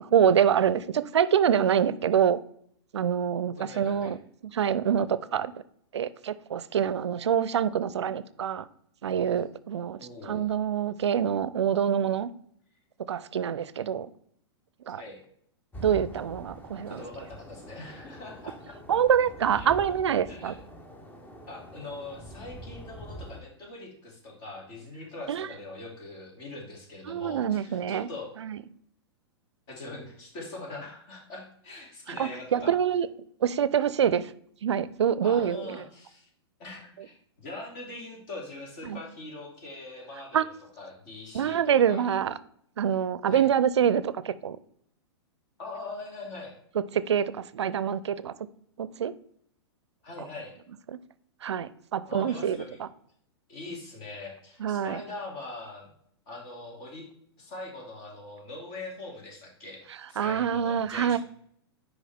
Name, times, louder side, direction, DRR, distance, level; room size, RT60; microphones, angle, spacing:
voice 1, 0.0-2.4 2.9-4.2 4.4-5.5 5.9-8.7 9.0-10.0 10.3-12.3 13.1-14.1 14.9-15.0 15.8-17.0 18.9-20.5 25.3-25.5 27.1-28.1 28.4-28.6 32.1-33.1 33.4-34.3 34.6-35.8 38.9-39.0 40.3-40.4 41.3-42.3 42.8-44.6 46.8-48.3 48.8-49.1 50.2-50.3 50.9-51.0 51.4-52.9 54.6-55.0 60.2-61.2, right 8 dB, 85° right, 0.4 m, -26 dB
voice 2, 3.6-4.2 10.0-10.5 15.0-15.2 16.9-18.8 19.5-19.7 20.3-20.6 21.5-28.3 29.7-32.7 35.2-36.3 36.6-41.6 41.9-42.1 43.3-43.5 45.6-46.5 50.0-50.5 52.0-52.8 53.5-55.9 56.3-57.0 57.4-59.8 60.1-61.2, left 2 dB, 50° left, 2.5 m, -42 dB
sound 1, 15.7-23.4, equal, 15° left, 0.7 m, -44 dB
6.3 x 4.9 x 3.4 m
hypercardioid pair, 120°, 14 cm